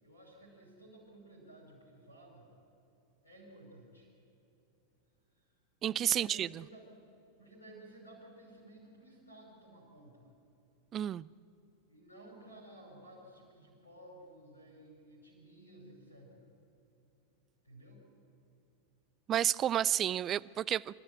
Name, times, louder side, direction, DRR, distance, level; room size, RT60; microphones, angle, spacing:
voice 1, 0.0-2.5 3.2-4.1 5.3-5.5 5.8-6.9 7.4-10.3 11.9-16.5 17.6-18.0, right 1 dB, 80° left, 5.5 m, -55 dB
voice 2, 5.8-6.6 10.9-11.3 19.3-21.0, right 10 dB, 30° right, 0.4 m, -31 dB
25.0 x 13.0 x 9.0 m
figure-of-eight pair, 90°, 0 cm